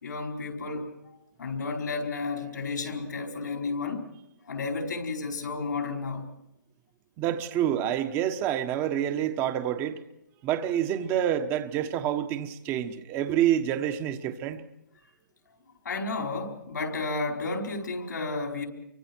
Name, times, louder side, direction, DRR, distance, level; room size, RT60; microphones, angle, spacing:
voice 1, 0.0-0.9 1.4-4.0 4.5-6.3 15.8-18.7, left 3 dB, 85° left, 5.0 m, -32 dB
voice 2, 7.2-10.0 10.4-14.6, right 10 dB, 25° right, 1.2 m, -27 dB
29.0 x 24.5 x 4.6 m
hypercardioid pair, 155°, 10 cm